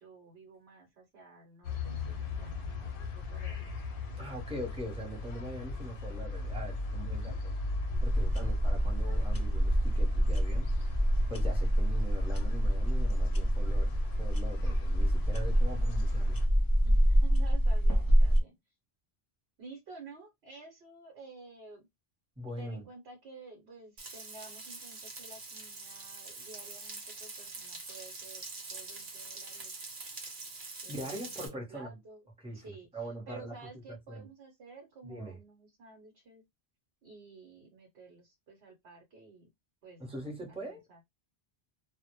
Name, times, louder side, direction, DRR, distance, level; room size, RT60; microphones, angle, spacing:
voice 1, 0.0-3.7 6.9-7.4 8.4-8.6 16.6-18.6 19.6-21.9 22.6-29.9 30.8-32.2 32.5-36.4 37.0-39.5 39.8-40.0 40.5-41.0, right 3 dB, 80° right, 1.0 m, -52 dB
sound 1, 1.6-16.5, left 2 dB, 65° left, 0.7 m, -38 dB
voice 2, 4.2-7.5 8.0-11.0 11.3-16.4 22.4-22.9 30.9-32.0 32.4-33.5 33.9-34.2 35.0-35.4 40.0-41.0, right 1 dB, 5° right, 0.6 m, -42 dB
sound 2, 7.9-18.4, equal, 35° left, 0.3 m, -27 dB
Frying (food), 24.0-31.5, right 3 dB, 55° right, 0.9 m, -44 dB
2.0 x 2.0 x 2.9 m
omnidirectional pair, 1.1 m